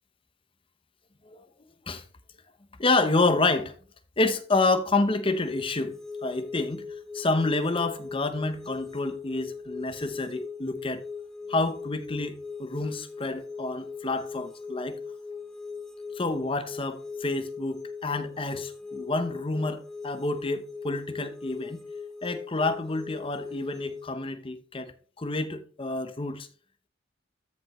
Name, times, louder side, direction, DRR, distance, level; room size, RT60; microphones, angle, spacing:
voice 1, 2.8-3.7 4.2-6.0 6.2-6.8 7.1-11.0 11.5-12.3 12.6-15.0 16.2-21.8 22.2-24.9 25.2-26.5, left 2 dB, 25° left, 0.8 m, -28 dB
sound 1, 5.3-24.1, left 5 dB, ahead, 1.4 m, -40 dB
13.5 x 5.2 x 3.2 m
head